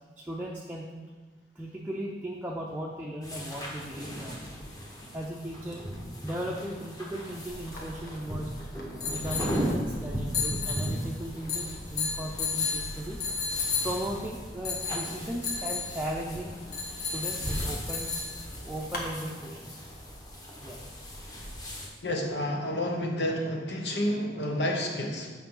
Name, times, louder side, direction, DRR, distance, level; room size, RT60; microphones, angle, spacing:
voice 1, 0.2-0.9 1.6-4.4 5.1-5.9 6.2-8.5 9.0-13.2 13.8-16.5 17.0-18.1 18.6-19.7 20.6-20.8, right 1 dB, 10° right, -3 dB, 0.5 m, -37 dB
sound 1, 3.2-21.9, equal, 20° left, 1.1 m, -38 dB
sound 2, 7.5-19.1, left 4 dB, 60° left, 1.4 m, -34 dB
voice 2, 22.0-25.3, left 1 dB, 85° left, 1 dB, 1.2 m, -30 dB
8.3 x 5.7 x 3.8 m, 1.4 s
head